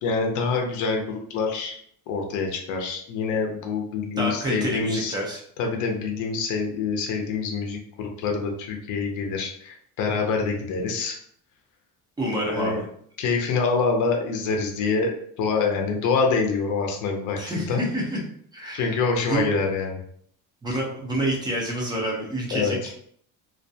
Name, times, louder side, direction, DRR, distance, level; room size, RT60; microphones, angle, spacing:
voice 1, 0.0-1.8 2.1-5.1 5.6-11.2 12.5-12.8 13.2-15.1 15.4-17.8 18.7-20.0 22.5-22.8, left 4 dB, 50° left, 2 dB, 0.6 m, -26 dB
voice 2, 4.2-5.4 12.2-12.8 17.4-18.2 18.5-19.5 20.6-23.0, right 1 dB, 10° right, -2 dB, 0.4 m, -28 dB
2.4 x 2.2 x 2.6 m, 0.64 s
cardioid pair, 160°, 38 cm